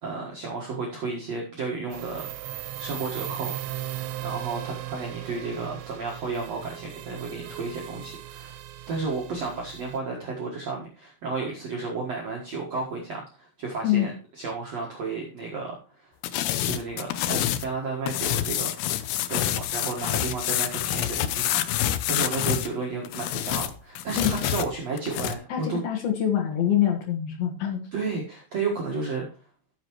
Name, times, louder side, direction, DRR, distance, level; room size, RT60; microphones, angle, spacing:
voice 1, 0.0-2.3 2.8-3.6 3.9-8.6 8.9-16.1 16.6-18.8 19.3-25.8 27.9-29.2, right 4 dB, 65° right, -2 dB, 1.7 m, -32 dB
sound 1, 1.9-10.0, right 13 dB, 80° right, 3.0 m, -37 dB
sound 2, 16.2-17.7 18.1-22.7 23.0-25.3, left 12 dB, 85° left, 2.4 m, -27 dB
voice 2, 25.5-27.8, left 10 dB, 65° left, 2 dB, 2.8 m, -25 dB
13.5 x 7.0 x 3.0 m, 0.37 s
omnidirectional pair, 5.3 m